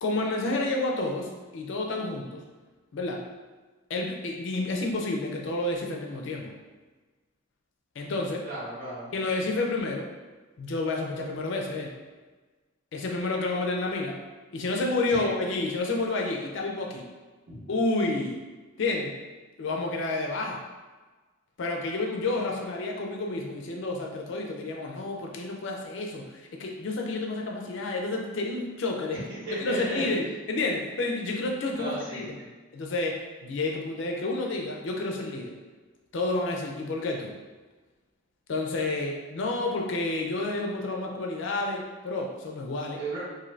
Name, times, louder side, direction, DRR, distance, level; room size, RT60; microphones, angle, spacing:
voice 1, 0.0-2.4 2.9-3.2 3.9-6.5 8.0-8.4 9.1-10.1 10.6-11.9 12.9-14.2 14.5-17.1 17.7-18.4 18.8-19.1 19.6-20.6 21.6-29.2 29.5-32.4 32.7-35.6 36.1-37.3 38.5-43.0, left 2 dB, 60° left, 1 dB, 0.4 m, -30 dB
voice 2, 8.4-9.1 15.1-15.3 17.5-17.6 29.1-29.2 29.5-30.0 31.7-32.5 42.9-43.2, right 2 dB, 70° right, -14 dB, 1.1 m, -35 dB
2.5 x 2.5 x 3.1 m, 1.3 s
head